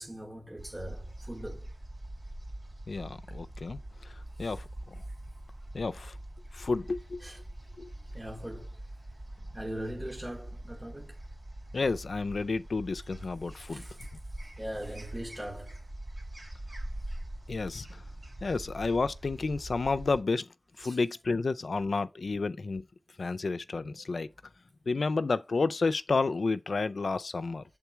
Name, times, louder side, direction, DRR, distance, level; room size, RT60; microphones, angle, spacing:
voice 1, 0.0-1.7 4.4-4.6 7.2-7.4 8.1-8.7 9.5-11.2 13.6-14.1 14.6-15.8 18.5-18.6 20.8-21.0, right 1 dB, 25° right, 1.0 m, -41 dB
sound 1, 0.6-20.2, right 1 dB, 75° right, 2.4 m, -43 dB
voice 2, 2.9-3.8 4.4-4.6 5.7-6.1 6.6-7.2 7.8-7.9 11.7-13.8 17.5-17.9 18.4-20.5 20.8-22.8 23.2-24.3 24.9-27.6, left 3 dB, 90° left, 0.4 m, -30 dB
7.2 x 3.7 x 4.5 m
wide cardioid pair, 50°, 0 cm